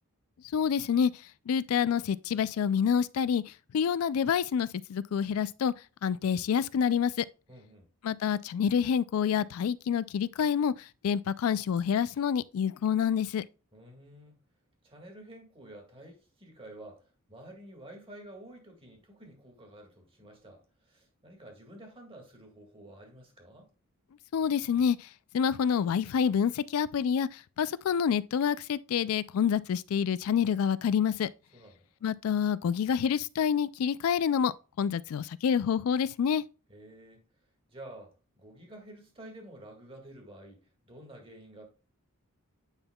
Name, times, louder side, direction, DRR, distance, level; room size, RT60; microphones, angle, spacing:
voice 1, 0.5-1.1 1.5-3.4 3.7-5.7 6.0-7.3 8.0-10.7 11.0-13.4 24.3-25.0 25.3-27.3 27.6-31.3 32.0-34.5 34.8-36.4, left 7 dB, 75° left, 0.3 m, -27 dB
voice 2, 7.5-7.9 13.7-14.4 14.8-23.7 31.5-31.9 36.7-37.2 37.7-40.6 40.9-41.6, right 1 dB, 25° right, 1.8 m, -50 dB
8.9 x 5.4 x 2.2 m
head